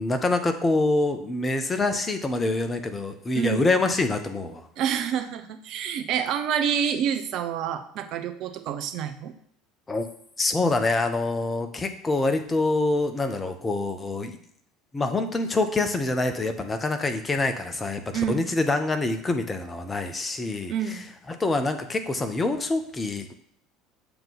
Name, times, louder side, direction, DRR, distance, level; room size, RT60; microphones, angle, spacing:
voice 1, 0.0-4.7 9.9-10.1 10.4-14.4 14.9-21.0 21.3-23.3, left 2 dB, 20° left, 6 dB, 0.9 m, -26 dB
voice 2, 3.3-3.7 4.8-9.3 18.1-18.5 20.7-21.1, right 8 dB, 50° right, 7 dB, 0.7 m, -28 dB
7.0 x 3.8 x 5.6 m, 0.66 s
figure-of-eight pair, 65°, 0 cm